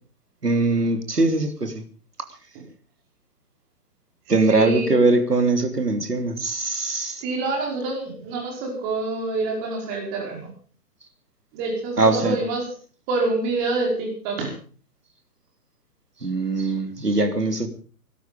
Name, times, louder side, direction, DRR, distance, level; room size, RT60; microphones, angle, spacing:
voice 1, 0.4-1.8 4.3-7.2 12.0-12.4 16.2-17.7, right 3 dB, 85° right, 7 dB, 3.2 m, -21 dB
voice 2, 4.3-4.9 7.2-10.5 11.5-12.7 13.1-14.5, right 3 dB, 25° right, 0 dB, 5.0 m, -27 dB
20.0 x 12.5 x 5.2 m, 0.40 s
figure-of-eight pair, 135°, 46 cm